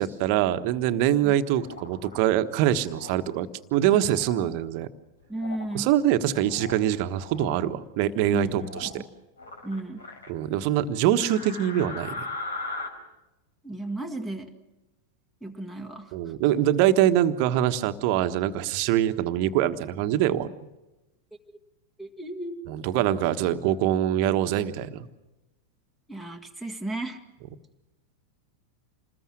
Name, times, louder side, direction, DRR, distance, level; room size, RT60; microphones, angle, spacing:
voice 1, 0.0-4.9 5.7-8.9 10.3-12.2 16.1-20.5 22.7-25.1, right 11 dB, 45° right, 10 dB, 1.3 m, -24 dB
sound 1, 1.6-2.1 2.9-3.2 3.9-4.5 5.3-5.8 6.2-6.8 7.1-7.6 8.6-9.0 9.4-10.3 11.2-12.9, left 3 dB, 70° left, 3.9 m, -38 dB
voice 2, 5.3-5.9 8.3-9.1 9.6-10.0 13.6-14.5 15.4-16.3 21.5-21.6 22.0-22.6 26.1-27.2, right 2 dB, 5° left, 8 dB, 1.7 m, -34 dB
27.5 x 20.5 x 6.2 m, 1.0 s
figure-of-eight pair, 90°, 0 cm